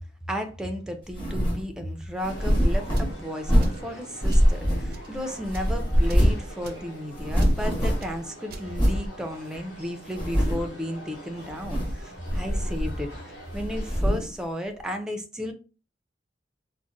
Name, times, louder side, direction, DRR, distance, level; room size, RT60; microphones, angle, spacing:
voice 1, 0.3-13.1 13.5-15.5, equal, 5° right, 0.4 m, -34 dB
sound 1, 1.1-1.7 2.2-3.9 4.2-5.2 5.5-6.5 6.8-6.9 7.1-8.2 8.7-9.1 9.5-9.6 10.1-10.7 11.5-12.0 12.3-13.2 13.5-14.3, equal, 30° left, 1.1 m, -23 dB
sound 2, 2.3-14.0, right 1 dB, 75° left, 1.2 m, -44 dB
sound 3, 2.9-3.2 3.6-3.9 4.3-4.5 4.9-5.1 5.5-5.7 6.1-6.3 6.6-6.9 7.4-7.6 8.0-8.1 8.5-8.7, right 3 dB, 60° right, 0.5 m, -44 dB
3.8 x 2.1 x 2.5 m
head